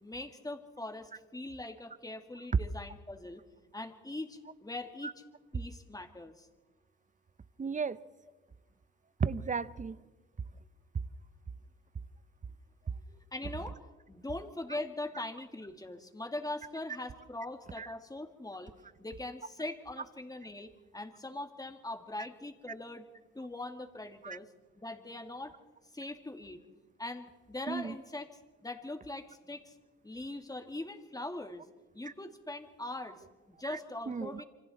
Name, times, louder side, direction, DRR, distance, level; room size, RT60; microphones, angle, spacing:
voice 1, 0.0-3.4 3.7-5.1 5.5-6.5 13.3-13.8 14.1-18.7 19.0-23.1 23.3-24.5 24.8-25.5 25.9-26.6 27.0-28.3 28.6-29.7 30.0-31.6 31.9-34.4, left 2 dB, 10° left, 2.2 m, -41 dB
voice 2, 7.6-8.0 9.2-10.0 17.8-17.9 24.2-24.4 27.7-27.9 33.6-33.8 34.1-34.4, right 5 dB, 25° right, 0.7 m, -34 dB
28.0 x 25.0 x 4.3 m
cardioid pair, 90°, 30 cm